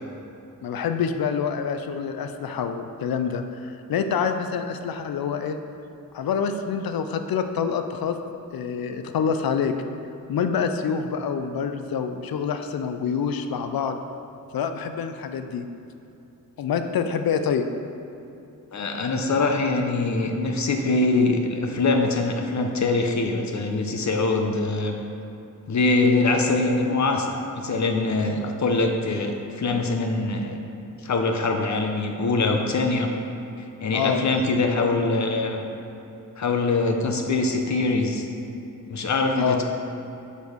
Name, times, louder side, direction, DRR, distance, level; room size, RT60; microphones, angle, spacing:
voice 1, 0.6-5.6 6.1-8.2 8.5-9.7 10.3-14.0 14.5-15.6 16.6-17.7 33.9-34.2 39.4-39.6, left 6 dB, 90° left, 7 dB, 0.5 m, -26 dB
voice 2, 18.7-24.9 25.7-30.6 31.0-33.1 33.8-35.6 36.4-38.3 38.8-39.6, left 3 dB, 55° left, 3 dB, 0.7 m, -23 dB
6.2 x 5.2 x 5.0 m, 2.8 s
wide cardioid pair, 165°, 34 cm